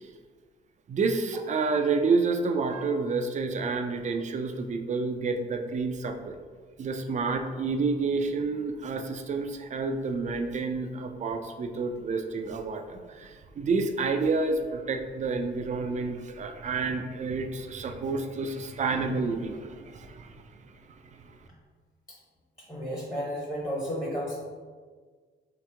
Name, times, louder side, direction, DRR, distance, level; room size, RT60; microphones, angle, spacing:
voice 1, 0.9-6.4 6.8-20.4, right 4 dB, 35° right, 6 dB, 0.4 m, -29 dB
voice 2, 22.7-24.4, equal, 15° left, -6 dB, 0.9 m, -32 dB
3.5 x 2.9 x 3.3 m, 1.5 s
cardioid pair, 90°, 20 cm